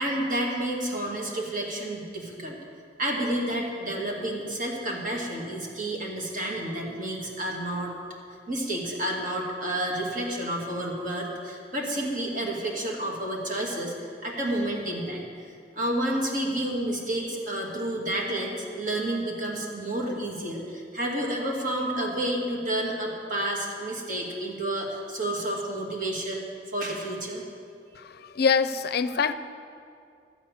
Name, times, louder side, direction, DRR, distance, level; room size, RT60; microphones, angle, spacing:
voice 1, 0.0-2.6 3.0-7.9 8.5-13.9 14.2-15.2 15.7-26.4 26.7-27.4, right 1 dB, 50° right, -2 dB, 2.3 m, -30 dB
voice 2, 28.0-29.3, left 6 dB, 60° left, 12 dB, 0.5 m, -25 dB
13.0 x 8.3 x 7.2 m, 2.3 s
head